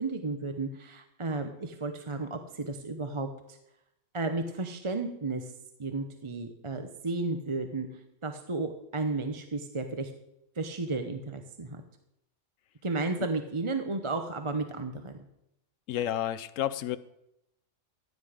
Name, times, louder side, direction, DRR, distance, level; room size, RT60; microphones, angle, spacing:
voice 1, 0.0-3.6 4.1-5.5 5.8-7.9 8.2-10.1 10.6-11.8 12.8-15.2, right 3 dB, 25° right, 6 dB, 0.9 m, -33 dB
voice 2, 15.9-17.0, left 12 dB, 85° left, 15 dB, 1.0 m, -31 dB
16.0 x 9.6 x 5.1 m, 0.81 s
omnidirectional pair, 1.3 m